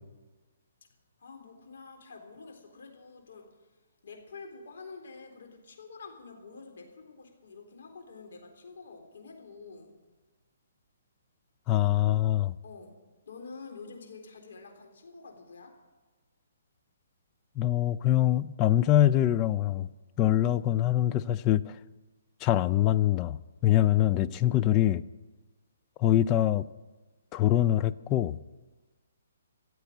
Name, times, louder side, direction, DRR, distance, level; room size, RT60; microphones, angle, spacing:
voice 1, 1.2-3.7 4.0-9.9 12.6-12.9 13.3-15.7 24.4-24.7, left 4 dB, 70° left, 3 dB, 3.8 m, -48 dB
voice 2, 11.7-12.5 17.6-19.9 20.2-21.7 22.4-23.4 23.6-25.0 26.0-26.6 27.3-28.4, left 12 dB, 20° left, 15 dB, 0.4 m, -24 dB
15.0 x 8.1 x 9.3 m, 1.3 s
hypercardioid pair, 165°, 0 cm